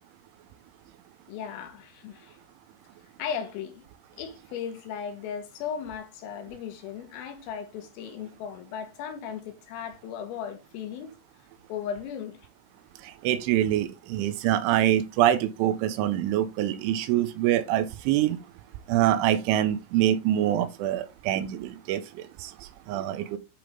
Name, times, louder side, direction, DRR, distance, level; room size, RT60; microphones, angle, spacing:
voice 1, 1.3-2.4 3.2-3.8 4.2-11.1 11.7-12.4, left 8 dB, 80° left, 4.1 m, -36 dB
voice 2, 13.0-18.4 18.9-23.4, right 12 dB, 85° right, 2.9 m, -25 dB
11.0 x 5.2 x 3.6 m
omnidirectional pair, 6.0 m